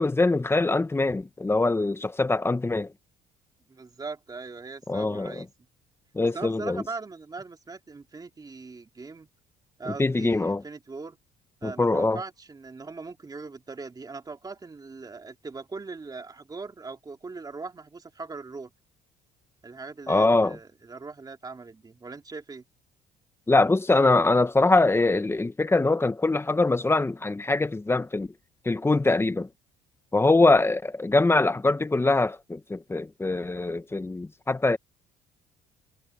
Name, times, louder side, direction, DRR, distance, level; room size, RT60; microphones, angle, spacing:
voice 1, 0.0-2.9 4.9-5.4 6.1-6.8 9.9-10.6 11.6-12.2 20.1-20.6 23.5-28.3 28.6-29.5 30.1-34.8, left 2 dB, 15° left, 1.1 m, -23 dB
voice 2, 3.7-5.5 6.3-9.3 9.8-11.2 11.6-18.7 19.6-22.6, right 4 dB, 25° right, 3.4 m, -40 dB
cardioid pair, 110°, 17 cm